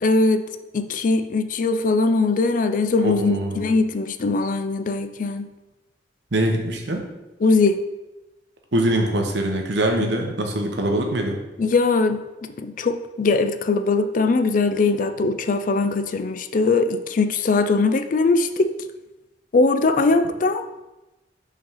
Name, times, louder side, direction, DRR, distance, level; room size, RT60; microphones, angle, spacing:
voice 1, 0.0-0.4 0.7-5.5 7.4-7.8 11.6-12.2 12.6-18.7 19.5-20.7, left 3 dB, 45° left, 9 dB, 0.4 m, -20 dB
voice 2, 3.0-3.6 6.3-7.1 8.7-11.4, right 1 dB, 70° right, 3 dB, 1.0 m, -23 dB
5.2 x 3.9 x 5.5 m, 1.0 s
head